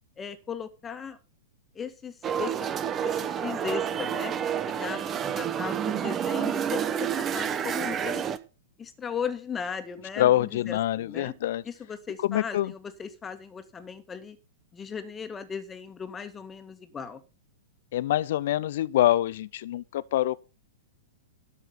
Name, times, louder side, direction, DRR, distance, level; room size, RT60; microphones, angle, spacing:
voice 1, 0.2-1.2 1.8-4.3 4.6-8.3 8.8-11.3 11.7-14.4 14.7-17.2, left 6 dB, 20° left, 1.8 m, -37 dB
sound 1, 2.2-8.4, right 8 dB, 25° right, 0.9 m, -29 dB
voice 2, 10.2-11.6 12.2-12.7 17.9-20.4, left 13 dB, 55° left, 0.6 m, -25 dB
13.0 x 6.3 x 5.9 m
figure-of-eight pair, 105°, 0 cm